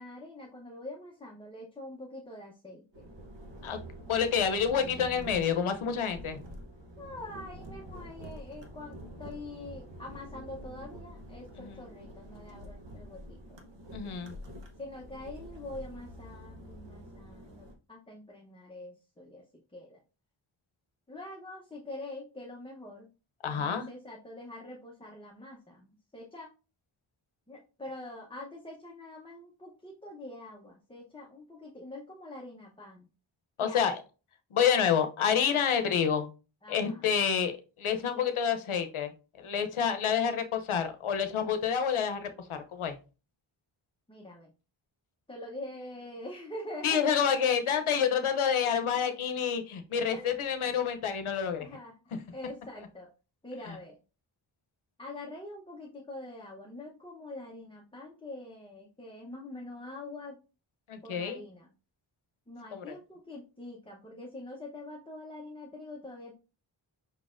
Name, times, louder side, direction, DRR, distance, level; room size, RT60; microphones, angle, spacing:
voice 1, 0.0-3.1 7.0-13.6 14.8-19.4 19.7-20.0 21.1-23.1 23.5-26.5 27.5-33.1 33.6-33.8 36.6-37.1 44.1-44.5 45.3-47.2 49.0-49.1 50.1-50.4 51.6-52.0 52.3-53.1 53.4-54.0 55.0-60.4 61.0-61.7 62.5-66.3, left 2 dB, 10° left, -2 dB, 0.7 m, -45 dB
sound 1, 2.9-17.7, equal, 60° right, 0.9 m, -47 dB
voice 2, 4.1-6.4 11.6-11.8 13.9-14.3 23.4-23.9 33.6-34.0 34.5-36.3 36.7-39.1 39.4-43.0 46.8-51.7 60.9-61.4 62.7-62.8, left 7 dB, 85° left, 8 dB, 0.7 m, -28 dB
5.4 x 4.0 x 2.5 m, 0.33 s
wide cardioid pair, 110°, 48 cm